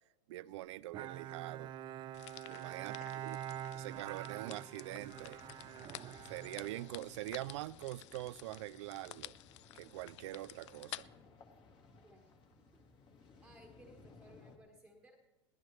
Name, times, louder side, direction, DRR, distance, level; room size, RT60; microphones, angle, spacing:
voice 1, 0.3-1.7 2.5-3.4 3.7-5.4 6.2-9.3 9.7-11.1, right 16 dB, 80° right, 0.4 m, -44 dB
Bowed string instrument, 0.9-7.6, right 11 dB, 30° right, 0.5 m, -46 dB
sound 1, 2.1-11.0, left 15 dB, 80° left, 0.4 m, -53 dB
sound 2, 4.9-14.6, left 3 dB, 30° left, 1.8 m, -60 dB
voice 2, 12.0-12.4 12.7-12.8 13.4-15.2, equal, 5° right, 1.4 m, -61 dB
22.0 x 17.0 x 3.2 m
supercardioid pair, 140°, 15 cm